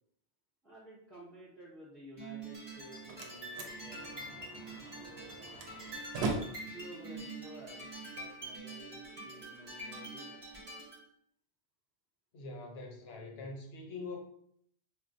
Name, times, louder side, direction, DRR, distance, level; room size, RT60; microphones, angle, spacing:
voice 1, 0.6-6.0 6.6-10.6, right 1 dB, ahead, -7 dB, 0.5 m, -53 dB
sound 1, 2.2-11.0, right 2 dB, 25° right, 0.8 m, -46 dB
Slam, 2.6-8.6, right 3 dB, 75° right, 0.8 m, -42 dB
voice 2, 12.3-14.2, left 3 dB, 65° left, 1 dB, 0.9 m, -43 dB
4.2 x 2.1 x 2.6 m, 0.67 s
omnidirectional pair, 1.1 m